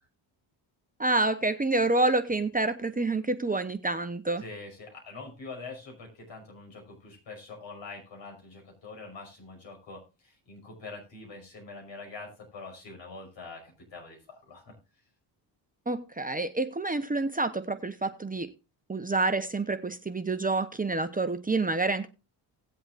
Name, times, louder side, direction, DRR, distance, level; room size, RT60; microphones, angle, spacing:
voice 1, 1.0-4.4 15.9-18.5 18.9-22.1, right 2 dB, 20° right, 0.9 m, -28 dB
voice 2, 4.4-14.7, left 3 dB, 70° left, 5.7 m, -44 dB
18.0 x 7.8 x 2.5 m
cardioid pair, 70°, 47 cm